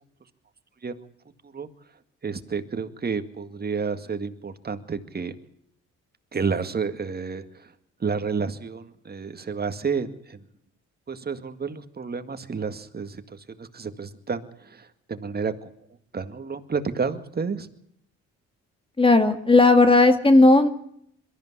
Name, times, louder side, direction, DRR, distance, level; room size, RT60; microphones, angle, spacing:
voice 1, 2.2-5.4 6.3-7.7 8.0-10.4 11.1-15.7 16.1-17.7, right 5 dB, 30° right, 9 dB, 2.1 m, -30 dB
voice 2, 19.0-20.7, left 2 dB, 15° left, 8 dB, 2.0 m, -15 dB
22.5 x 14.0 x 9.7 m, 0.70 s
cardioid pair, 90°, 30 cm